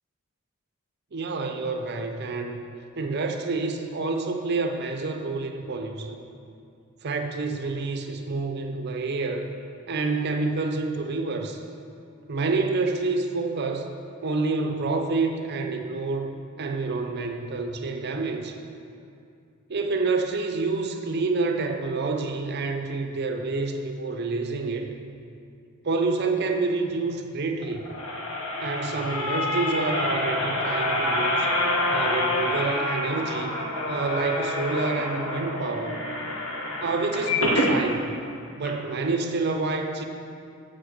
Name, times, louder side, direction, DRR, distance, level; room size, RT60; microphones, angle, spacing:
voice 1, 1.1-2.6 3.0-6.2 7.0-9.5 9.9-11.6 12.3-13.9 14.2-18.6 19.7-24.9 25.8-27.8 28.6-31.5 31.9-33.6 33.8-36.0 36.8-38.1 38.6-40.0, right 3 dB, 50° right, 5 dB, 0.6 m, -28 dB
sound 1, 27.6-37.8 38.2-38.3 38.6-38.7, left 1 dB, 80° left, 1.2 m, -27 dB
7.9 x 5.9 x 6.5 m, 2.5 s
head